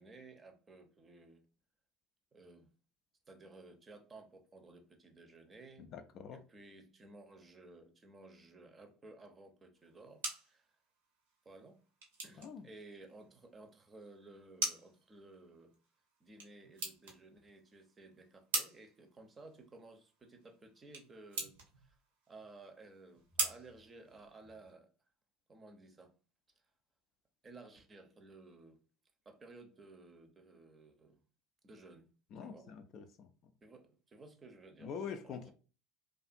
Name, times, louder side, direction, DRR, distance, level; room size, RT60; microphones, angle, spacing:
voice 1, 0.0-1.4 2.3-2.7 3.3-5.9 6.3-10.7 11.4-11.8 12.2-15.7 16.2-22.0 22.3-24.9 25.5-26.1 27.4-28.8 29.3-31.2 31.6-32.1 32.4-32.8 33.6-35.5, right 2 dB, 25° right, 0.6 m, -56 dB
voice 2, 5.8-6.4 12.4-12.7 32.3-33.3 34.8-35.5, left 6 dB, 50° left, 0.3 m, -45 dB
sound 1, 9.8-24.7, right 3 dB, 75° right, 0.8 m, -44 dB
2.5 x 2.4 x 2.5 m
hypercardioid pair, 75°, 0 cm